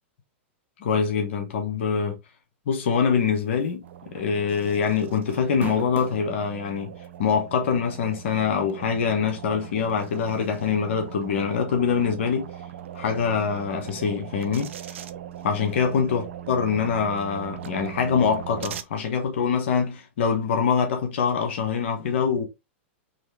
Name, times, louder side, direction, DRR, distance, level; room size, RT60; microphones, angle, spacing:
voice 1, 0.8-2.2 2.7-6.9 7.2-12.5 12.9-14.7 15.4-22.4, left 6 dB, 70° left, 1.2 m, -24 dB
sound 1, 3.6-3.9 4.2-4.3 5.3-6.3 7.0-7.1 8.7-8.8, right 9 dB, 25° right, 0.4 m, -36 dB
sound 2, 3.8-18.8, right 10 dB, 75° right, 0.6 m, -40 dB
4.2 x 3.2 x 3.3 m
hypercardioid pair, 115°, 7 cm